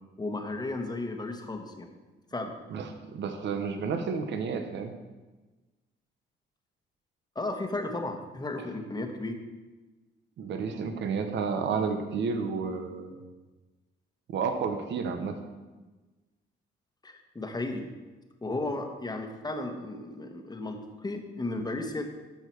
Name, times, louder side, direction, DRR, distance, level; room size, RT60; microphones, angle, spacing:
voice 1, 0.2-1.9 2.3-2.5 7.3-9.3 17.0-17.9 18.4-22.0, left 2 dB, 20° left, 5 dB, 1.3 m, -34 dB
voice 2, 2.7-4.9 10.4-13.1 14.3-15.4, right 5 dB, 65° right, 6 dB, 1.1 m, -31 dB
13.5 x 4.9 x 4.6 m, 1.2 s
cardioid pair, 90°, 20 cm